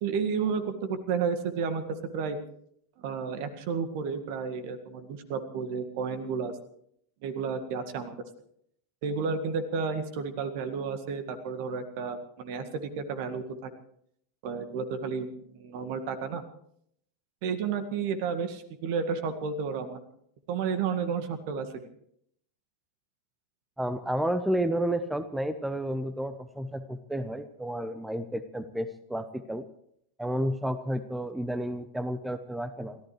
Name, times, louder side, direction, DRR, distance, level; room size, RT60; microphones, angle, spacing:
voice 1, 0.0-2.4 3.0-6.6 7.2-8.1 9.0-13.7 14.4-16.4 17.4-20.0 20.5-21.9, right 5 dB, 45° right, 9 dB, 1.9 m, -32 dB
voice 2, 23.8-29.6 30.2-33.0, right 1 dB, 5° right, 12 dB, 0.9 m, -31 dB
30.0 x 14.0 x 3.3 m, 0.70 s
figure-of-eight pair, 90°, 0 cm